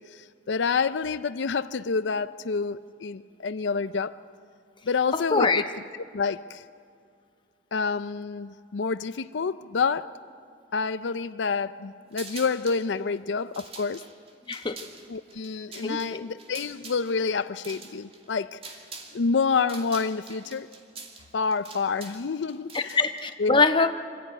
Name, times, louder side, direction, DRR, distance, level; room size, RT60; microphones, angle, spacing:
voice 1, 0.0-4.2 4.9-5.5 6.1-6.6 7.7-10.1 10.7-14.0 15.1-18.6 19.1-20.7 21.3-23.0 23.4-23.6, left 5 dB, 80° left, 14 dB, 0.5 m, -28 dB
voice 2, 5.1-5.6 14.5-14.8 15.8-16.2 22.7-23.9, left 3 dB, 25° left, 7 dB, 1.0 m, -24 dB
sound 1, 12.1-12.8 13.4-19.2 19.4-23.2, right 4 dB, 35° right, 2.5 m, -44 dB
25.0 x 15.5 x 9.3 m, 2.4 s
head